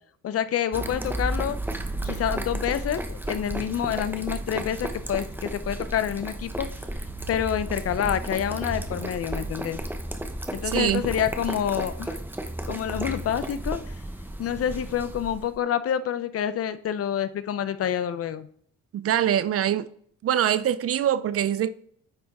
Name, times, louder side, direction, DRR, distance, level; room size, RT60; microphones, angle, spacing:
voice 1, 0.2-1.6 2.0-6.7 7.3-9.8 10.5-12.2 12.7-13.8 14.4-18.5, left 9 dB, 50° left, 0.6 m, -27 dB
sound 1, 0.7-15.5, right 1 dB, 5° right, 0.8 m, -33 dB
voice 2, 10.6-11.0 18.9-19.9 20.2-21.7, right 10 dB, 50° right, 0.4 m, -23 dB
9.7 x 3.5 x 4.1 m
cardioid pair, 90°, 30 cm